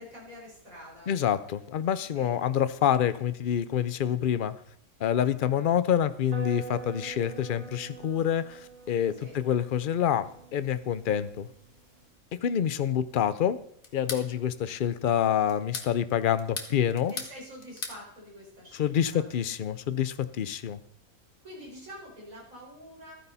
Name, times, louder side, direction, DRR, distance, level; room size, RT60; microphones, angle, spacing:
voice 1, 0.0-1.2 2.2-2.4 9.2-9.4 17.1-19.3 21.4-23.1, equal, 65° right, -4 dB, 5.3 m, -46 dB
voice 2, 1.1-4.5 5.0-11.5 12.4-13.6 13.9-17.1 18.8-20.8, left 9 dB, 60° left, 13 dB, 0.5 m, -27 dB
sound 1, 6.3-12.1, right 6 dB, 25° right, 5.2 m, -45 dB
sound 2, 13.8-14.3 15.5-15.9 16.4-17.3 17.6-18.0, left 4 dB, 40° left, 1.5 m, -37 dB
13.5 x 9.7 x 4.1 m, 0.68 s
omnidirectional pair, 1.6 m